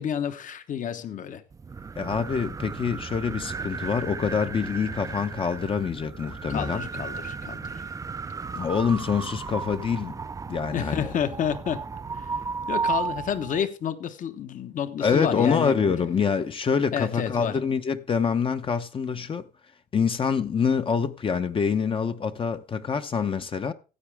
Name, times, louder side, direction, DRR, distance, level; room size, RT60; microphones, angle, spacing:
voice 1, 0.0-1.4 6.5-7.8 10.7-11.8 12.2-12.3 12.7-15.9 16.9-17.5, left 8 dB, 50° left, 1.1 m, -30 dB
sound 1, 1.5-13.6, right 5 dB, 20° right, 0.5 m, -34 dB
voice 2, 2.0-6.8 8.5-10.2 10.5-11.1 15.0-19.4 19.9-23.7, left 6 dB, 30° left, 0.8 m, -26 dB
15.0 x 8.1 x 3.5 m
cardioid pair, 110°, 17 cm